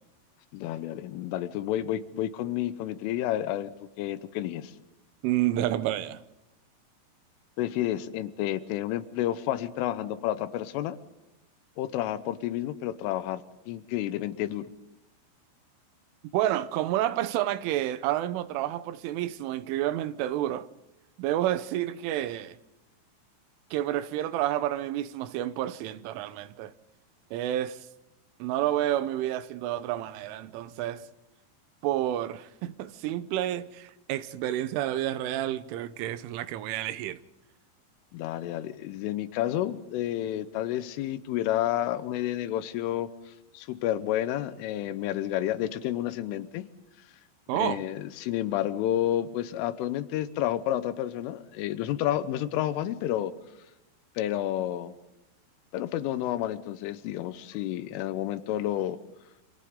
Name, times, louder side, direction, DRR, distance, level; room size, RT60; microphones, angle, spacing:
voice 1, 0.5-4.7 7.6-11.0 11.8-14.7 38.1-43.1 43.6-46.7 47.5-53.3 54.2-54.9 55.7-59.0, left 12 dB, 90° left, 3.6 m, -30 dB
voice 2, 5.2-6.2 16.3-20.7 21.2-22.6 23.7-26.7 27.3-27.8 28.4-31.1 31.8-37.2 47.5-47.8, right 13 dB, 85° right, 3.4 m, -29 dB
29.5 x 27.5 x 3.8 m
omnidirectional pair, 5.6 m